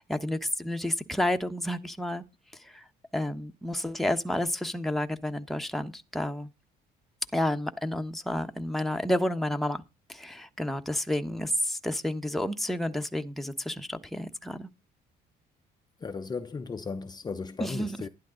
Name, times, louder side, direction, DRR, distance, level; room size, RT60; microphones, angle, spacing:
voice 1, 0.0-2.2 2.6-2.8 3.1-6.5 7.3-9.8 10.1-14.7 17.6-18.0, left 1 dB, ahead, 1.2 m, -30 dB
voice 2, 16.0-18.1, left 4 dB, 25° left, 0.7 m, -36 dB
11.5 x 11.5 x 3.9 m
cardioid pair, 110°, 17 cm